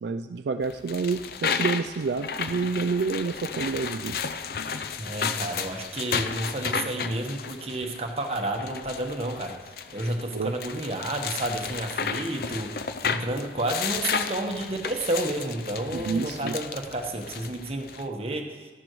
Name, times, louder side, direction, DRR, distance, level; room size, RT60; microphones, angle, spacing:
voice 1, 0.0-4.2 10.3-10.5 15.9-16.6, right 4 dB, 75° right, 7 dB, 0.4 m, -28 dB
sound 1, 0.6-18.1, left 6 dB, 55° left, 0.5 m, -33 dB
voice 2, 5.0-9.6 9.9-18.7, right 1 dB, 35° right, 2 dB, 1.1 m, -31 dB
13.5 x 11.5 x 3.1 m, 1.4 s
head